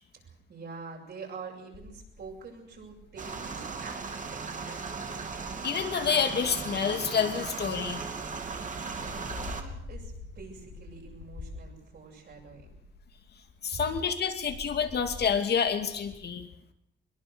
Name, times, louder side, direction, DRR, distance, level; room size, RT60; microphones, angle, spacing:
voice 1, 0.1-4.8 8.9-12.7 13.7-13.8, right 4 dB, 55° right, 0 dB, 7.8 m, -46 dB
sound 1, 1.7-7.7 8.2-16.2, left 3 dB, 80° left, 4.9 m, -47 dB
sound 2, 3.2-9.6, right 4 dB, 40° right, 2.8 m, -37 dB
voice 2, 5.6-8.0 13.6-16.5, left 7 dB, 55° left, 6 dB, 2.6 m, -28 dB
22.5 x 22.0 x 6.4 m, 0.76 s
cardioid pair, 135°, 20 cm